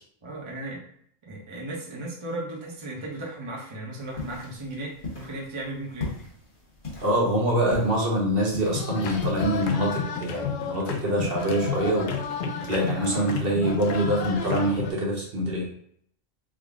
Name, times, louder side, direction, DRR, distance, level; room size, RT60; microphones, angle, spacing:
voice 1, 0.2-0.8 1.2-6.2 13.1-13.4, right 1 dB, 30° right, -2 dB, 0.7 m, -36 dB
sound 1, 4.0-9.5, left 3 dB, 25° left, 1.0 m, -39 dB
voice 2, 7.0-15.7, right 1 dB, 50° right, -3 dB, 1.1 m, -25 dB
sound 2, 8.7-14.9, left 6 dB, 85° left, 1.0 m, -31 dB
3.7 x 2.0 x 3.5 m, 0.65 s
omnidirectional pair, 1.3 m